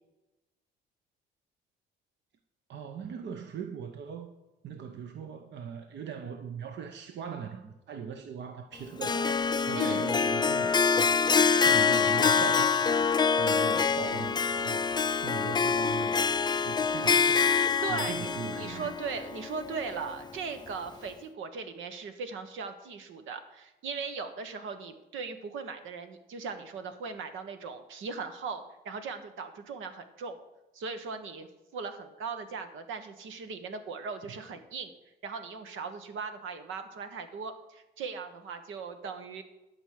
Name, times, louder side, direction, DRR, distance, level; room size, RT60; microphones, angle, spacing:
voice 1, 2.7-4.3 4.6-11.2 11.6-16.3 16.5-17.5 17.9-18.9, right 7 dB, 65° right, 0.9 m, -40 dB
Harp, 9.0-20.2, left 5 dB, 20° left, 0.4 m, -26 dB
voice 2, 9.7-10.1 17.8-30.4 30.7-31.5 31.7-34.9 35.2-39.4, right 5 dB, 80° right, 1.3 m, -38 dB
12.0 x 5.1 x 7.6 m
cardioid pair, 90°, 20 cm